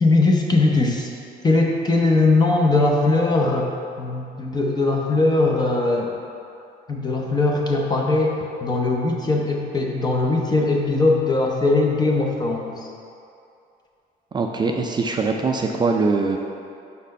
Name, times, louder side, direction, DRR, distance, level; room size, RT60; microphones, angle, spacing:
voice 1, 0.0-1.1 1.4-6.1 6.9-12.9, left 2 dB, 25° left, 0 dB, 0.6 m, -20 dB
voice 2, 14.3-16.4, right 4 dB, 25° right, 2 dB, 0.4 m, -22 dB
5.4 x 4.2 x 5.2 m, 2.6 s
cardioid pair, 110°, 17 cm